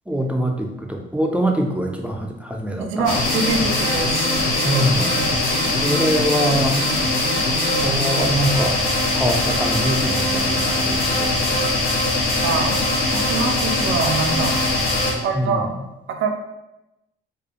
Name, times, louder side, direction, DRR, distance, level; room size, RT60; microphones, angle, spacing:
voice 1, 0.1-3.2 4.6-5.3 5.8-6.8 7.8-8.8 9.2-11.6 15.3-15.6, equal, 5° right, 1 dB, 0.3 m, -23 dB
voice 2, 2.8-4.3 12.4-14.6 15.2-15.7 16.1-16.3, right 4 dB, 80° right, 5 dB, 0.4 m, -24 dB
sound 1, 3.1-15.1, left 2 dB, 90° left, 0.7 m, -21 dB
2.4 x 2.3 x 2.8 m, 0.94 s
cardioid pair, 90°, 20 cm